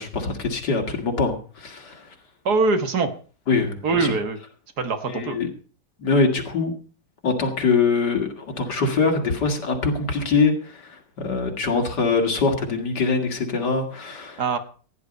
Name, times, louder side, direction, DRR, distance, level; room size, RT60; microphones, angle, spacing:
voice 1, 0.0-2.0 3.5-4.1 5.1-5.5 6.0-6.7 7.2-14.4, left 4 dB, 80° left, 3 dB, 2.8 m, -23 dB
voice 2, 2.5-3.1 3.8-4.4 4.8-5.4 14.4-14.6, right 4 dB, 70° right, 8 dB, 2.0 m, -22 dB
16.0 x 10.0 x 5.3 m, 0.40 s
omnidirectional pair, 1.8 m